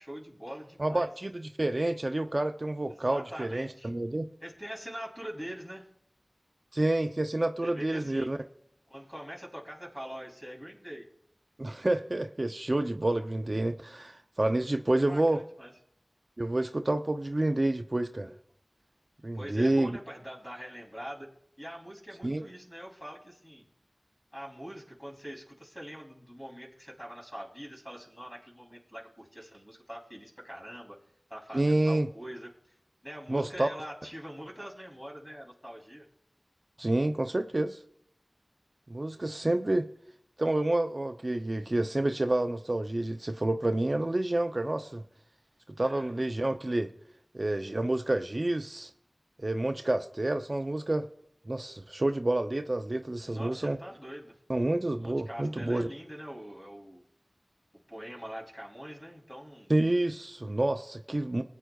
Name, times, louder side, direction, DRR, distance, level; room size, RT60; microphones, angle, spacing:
voice 1, 0.0-1.1 2.9-3.9 4.4-5.9 7.6-8.3 8.9-11.0 14.6-15.7 19.3-21.3 21.6-23.7 24.3-31.0 31.3-32.7 33.0-36.0 45.8-46.1 53.2-54.4 55.0-57.0 57.9-59.7, equal, 15° left, -1 dB, 3.1 m, -43 dB
voice 2, 0.8-4.3 6.7-8.4 11.6-15.4 16.4-18.3 19.2-20.0 22.2-22.5 31.5-32.1 33.3-33.7 36.8-37.8 38.9-39.9 40.4-45.0 45.8-46.9 47.3-48.9 49.4-51.1 51.5-53.8 54.5-55.9 59.7-61.4, right 1 dB, 45° right, 7 dB, 0.5 m, -29 dB
20.5 x 9.0 x 2.3 m, 0.73 s
wide cardioid pair, 45°, 0 cm